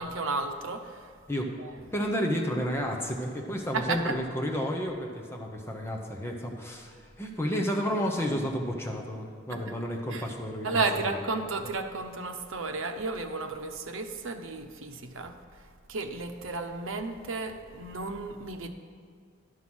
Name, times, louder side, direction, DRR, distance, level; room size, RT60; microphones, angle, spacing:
voice 1, 0.0-1.1 1.6-1.8 3.7-4.2 9.5-9.7 10.1-10.2 10.6-15.3 15.9-18.7, right 3 dB, 85° right, 6 dB, 0.8 m, -33 dB
voice 2, 1.9-11.2, equal, 10° left, 1 dB, 0.8 m, -31 dB
11.0 x 5.7 x 6.2 m, 2.1 s
head